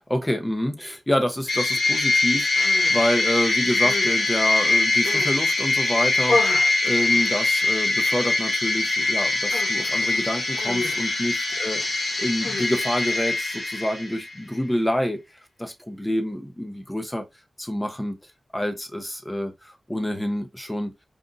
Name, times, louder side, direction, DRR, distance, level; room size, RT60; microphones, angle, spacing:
voice 1, 0.1-15.2 15.6-17.2 17.6-18.2 18.5-20.9, equal, 10° left, 0.8 m, -27 dB
sound 1, 1.5-14.3, left 2 dB, 55° left, 1.3 m, -23 dB
Human voice, 2.4-3.0 3.6-5.4 5.8-7.8 8.1-8.6 8.8-9.1 9.5-13.2, left 3 dB, 75° left, 0.8 m, -33 dB
5.1 x 2.6 x 2.5 m
cardioid pair, 60°, 0 cm